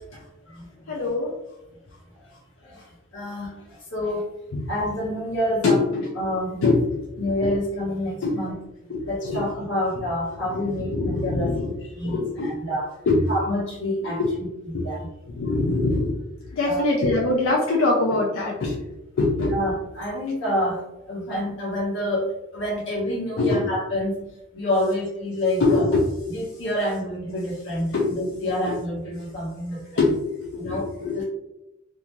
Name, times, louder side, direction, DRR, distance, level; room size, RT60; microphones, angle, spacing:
voice 1, 0.1-0.9 2.2-2.3 2.6-4.3 4.7-5.8 6.2-6.7 7.2-8.5 9.0-11.5 11.9-12.9 13.3-14.2 14.6-15.1 16.7-16.8 19.5-24.2 24.5-25.9 26.3-30.0 30.6-31.2, left 1 dB, 65° left, -4 dB, 1.0 m, -28 dB
voice 2, 0.9-1.3 4.5-4.7 5.6-6.2 6.6-7.5 8.2-8.4 8.9-9.5 10.5-11.8 12.0-12.6 13.1-13.3 14.0-14.3 14.7-14.9 15.2-16.2 16.5-18.8 19.2-19.6 23.4-23.6 25.6-26.1 27.9-28.4 28.7-28.8 30.0-31.2, left 2 dB, 90° left, -2 dB, 0.5 m, -23 dB
2.6 x 2.4 x 2.9 m, 0.92 s
head